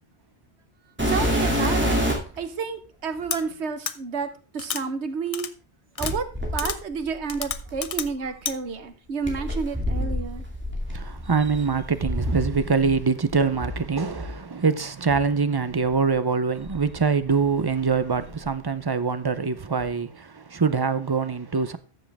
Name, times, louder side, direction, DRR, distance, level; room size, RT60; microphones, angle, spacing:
sound 1, 1.0-2.4 3.2-3.3 6.0-8.1 9.2-13.0 13.3-14.3 15.1-15.2 15.8-15.9 16.6-17.7 18.0-18.5 19.8-19.9, equal, 10° right, 2.5 m, -28 dB
voice 1, 1.0-2.0 2.4-5.5 6.0-6.2 6.5-10.4, right 5 dB, 90° right, 1.3 m, -30 dB
sound 2, 3.3-3.4 3.9-4.0 4.6-4.8 5.3-5.5 6.0-6.1 6.6-6.8 7.3-8.1 8.5-8.6, left 7 dB, 45° left, 0.5 m, -30 dB
voice 2, 10.9-21.8, right 5 dB, 30° right, 0.5 m, -24 dB
13.0 x 7.4 x 3.5 m
omnidirectional pair, 1.1 m